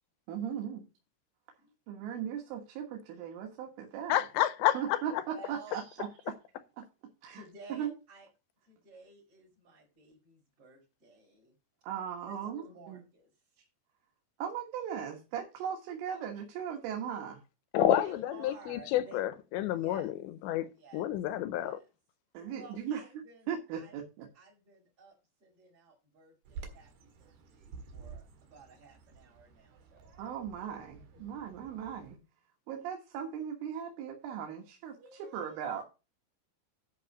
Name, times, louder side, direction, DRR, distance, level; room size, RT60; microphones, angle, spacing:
voice 1, 0.3-0.9 1.9-4.2 4.8-5.1 5.5-6.1 6.8-6.9 7.2-7.4 7.7-7.9 11.9-13.0 14.4-17.4 22.3-23.0 23.5-24.3 30.2-32.2 32.7-35.0 35.3-35.8, right 8 dB, 85° right, 4.0 m, -38 dB
voice 2, 1.6-2.1 5.3-5.8 6.2-6.3 7.3-8.3 8.6-11.5 12.1-13.6 15.6-15.7 17.9-19.2 19.7-20.1 20.7-21.0 21.5-21.8 22.5-24.0 24.3-25.1 25.4-30.1 31.1-31.3 35.0-35.6, right 3 dB, 30° right, 5.0 m, -54 dB
voice 3, 4.1-5.2 17.7-20.2 20.4-21.8, left 12 dB, 80° left, 2.8 m, -29 dB
Bird vocalization bird call bird song, 26.5-32.1, right 5 dB, 60° right, 3.3 m, -50 dB
11.0 x 5.5 x 5.9 m
omnidirectional pair, 5.5 m